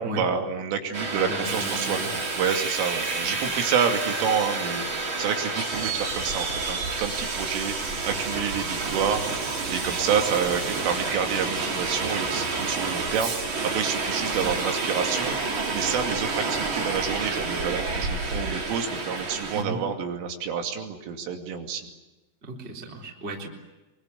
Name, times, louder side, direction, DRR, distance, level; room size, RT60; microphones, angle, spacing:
voice 1, 0.0-2.0 2.4-7.7 8.0-13.4 13.6-21.9, right 7 dB, 80° right, 4 dB, 5.1 m, -28 dB
Subway metro underground, 0.9-19.6, right 3 dB, 30° right, 2.6 m, -29 dB
voice 2, 1.1-2.1 3.2-3.4 8.1-8.2 14.4-14.6 19.5-19.9 22.4-23.5, right 2 dB, 15° right, -1 dB, 3.2 m, -35 dB
25.0 x 24.0 x 8.3 m, 1.1 s
omnidirectional pair, 5.7 m